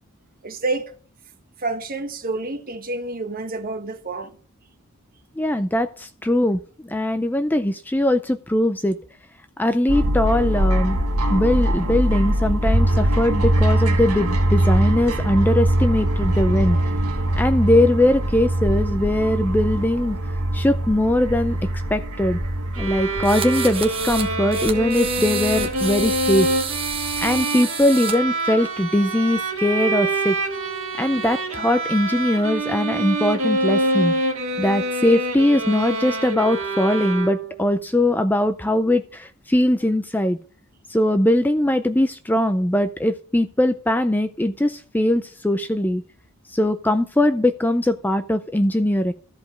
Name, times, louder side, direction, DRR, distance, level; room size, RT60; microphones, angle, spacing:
voice 1, 0.4-0.9 1.6-4.3, right 2 dB, 40° right, 1.3 m, -28 dB
voice 2, 5.4-9.0 9.6-11.0 11.3-16.8 17.3-20.2 20.5-21.6 21.9-22.4 22.8-26.5 27.2-30.4 31.0-34.1 34.6-40.4 40.9-46.0 46.5-49.1, left 1 dB, 10° left, 0.4 m, -21 dB
sound 1, 9.9-27.4, right 1 dB, 90° right, 1.6 m, -23 dB
sound 2, 22.7-37.7, right 2 dB, 65° right, 2.0 m, -26 dB
sound 3, 23.2-24.3 24.5-28.1, right 6 dB, 25° right, 1.3 m, -30 dB
13.5 x 5.2 x 6.1 m
head